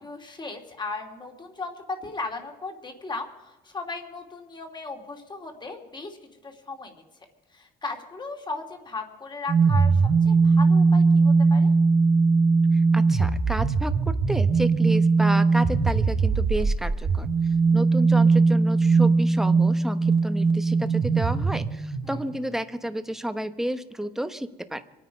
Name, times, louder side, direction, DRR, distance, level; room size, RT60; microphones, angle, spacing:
voice 1, 0.0-6.2 6.4-7.0 7.5-11.7 22.0-22.1, left 3 dB, 25° left, 4 dB, 2.7 m, -36 dB
sound 1, 9.5-22.3, right 4 dB, 30° right, 1.0 m, -20 dB
voice 2, 12.7-17.3 17.7-24.8, right 1 dB, ahead, 10 dB, 0.9 m, -31 dB
24.5 x 9.5 x 5.3 m, 1.1 s
cardioid pair, 110°, 17 cm